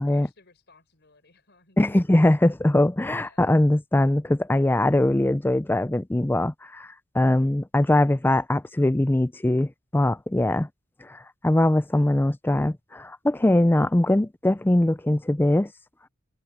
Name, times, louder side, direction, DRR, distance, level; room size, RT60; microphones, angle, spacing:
voice 1, 0.0-2.0 3.2-3.5 7.3-7.6, left 3 dB, 60° left, 4.8 m, -58 dB
voice 2, 1.8-6.9 7.1-10.7 11.0-15.7, left 1 dB, 10° left, 0.4 m, -21 dB
head